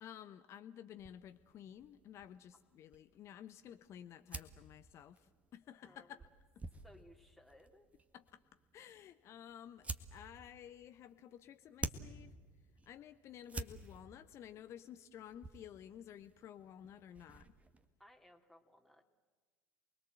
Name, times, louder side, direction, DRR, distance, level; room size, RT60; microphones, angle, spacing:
voice 1, 0.0-6.2 6.6-6.7 8.1-8.4 8.7-12.3 12.9-17.5, left 10 dB, 45° left, 10 dB, 0.9 m, -53 dB
sound 1, 1.0-17.8, right 3 dB, 20° right, 1.7 m, -51 dB
voice 2, 5.8-6.2 6.8-7.9 18.0-19.0, left 1 dB, ahead, 1 dB, 2.6 m, -62 dB
28.5 x 21.5 x 7.7 m, 1.4 s
figure-of-eight pair, 70°, 7 cm